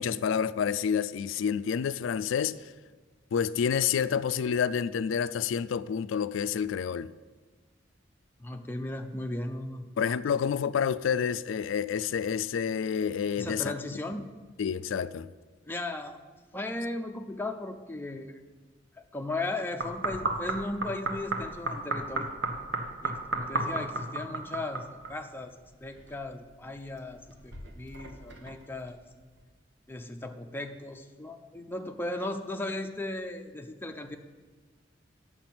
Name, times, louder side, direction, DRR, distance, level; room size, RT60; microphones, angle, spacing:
voice 1, 0.0-2.7 3.3-7.1 10.0-13.7 14.6-15.3, left 7 dB, 80° left, 0.3 m, -29 dB
voice 2, 8.4-9.9 13.4-14.3 15.7-16.2 16.5-18.4 19.0-22.3 23.0-25.5 25.8-29.0 29.9-34.2, left 2 dB, 10° left, 0.6 m, -36 dB
sound 1, 19.8-25.2 25.5-26.5 26.9-28.8 29.4-29.5, right 2 dB, 65° right, 1.2 m, -33 dB
8.7 x 7.1 x 5.9 m
head